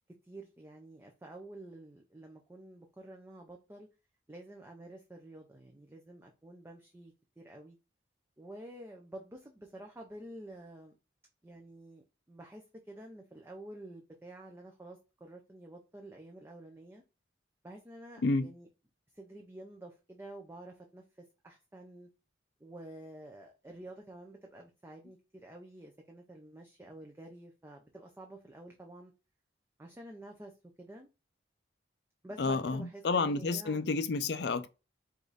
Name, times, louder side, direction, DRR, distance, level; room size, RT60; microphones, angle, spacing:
voice 1, 0.2-3.9 4.3-7.8 8.4-10.9 11.4-17.0 17.6-18.7 19.1-22.1 22.6-29.1 29.8-31.1 32.2-33.8, right 1 dB, 15° right, 0.5 m, -50 dB
voice 2, 32.4-34.7, left 3 dB, 60° left, 0.5 m, -30 dB
5.0 x 2.6 x 3.9 m
head